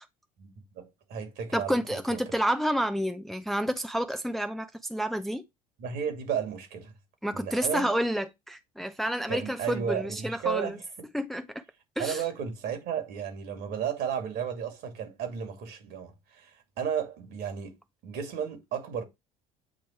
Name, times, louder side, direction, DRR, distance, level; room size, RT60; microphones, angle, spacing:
voice 1, 0.4-2.2 5.8-6.9 7.3-7.9 9.3-10.8 12.0-17.8 18.0-19.0, right 8 dB, 65° right, 2.4 m, -33 dB
voice 2, 1.5-5.4 7.2-10.8 11.1-11.6 12.0-12.2, equal, ahead, 0.6 m, -29 dB
8.7 x 3.0 x 4.5 m
hypercardioid pair, 75°, 18 cm